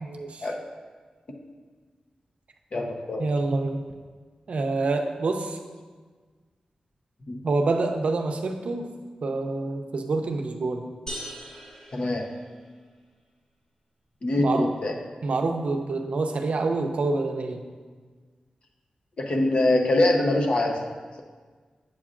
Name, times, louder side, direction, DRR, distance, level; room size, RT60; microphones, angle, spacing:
voice 1, 0.0-0.5 3.2-3.8 4.5-5.6 7.4-8.9 9.2-10.8 14.4-14.7 15.2-17.6, right 3 dB, 65° right, 4 dB, 0.6 m, -27 dB
voice 2, 2.7-3.3 7.3-7.4 11.9-12.2 14.2-14.9 19.2-20.8, left 2 dB, 55° left, 2 dB, 0.9 m, -23 dB
sound 1, 11.1-12.9, equal, 35° left, 2.1 m, -40 dB
8.4 x 7.7 x 2.5 m, 1.5 s
wide cardioid pair, 90°, 2 cm